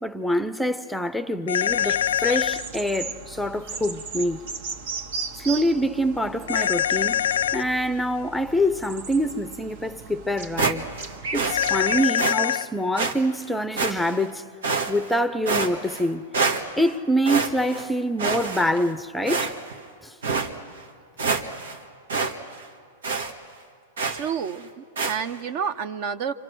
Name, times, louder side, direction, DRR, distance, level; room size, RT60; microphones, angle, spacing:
voice 1, 0.0-4.4 5.3-10.9 11.3-14.4 14.9-16.3 16.8-19.5 20.0-20.2, equal, ahead, 0.6 m, -25 dB
sound 1, 1.5-2.6 6.5-7.6 11.5-12.7, left 10 dB, 85° left, 0.5 m, -23 dB
sound 2, 1.6-12.1, right 4 dB, 70° right, 1.7 m, -37 dB
sound 3, 10.6-11.1 11.3-11.6 12.2-12.4 13.0-13.1 13.8-14.2 14.6-15.1 15.5-16.1 16.3-16.9 17.2-17.9 18.2-18.9 19.3-19.8 20.2-20.5 20.9-21.0 21.2-21.8 22.1-22.3 22.6-22.7 23.0-23.3 24.0-24.3 25.0-25.2, right 4 dB, 85° right, 1.9 m, -26 dB
voice 2, 24.1-26.3, right 7 dB, 45° right, 1.0 m, -29 dB
29.5 x 26.0 x 6.2 m
hypercardioid pair, 135°, 0 cm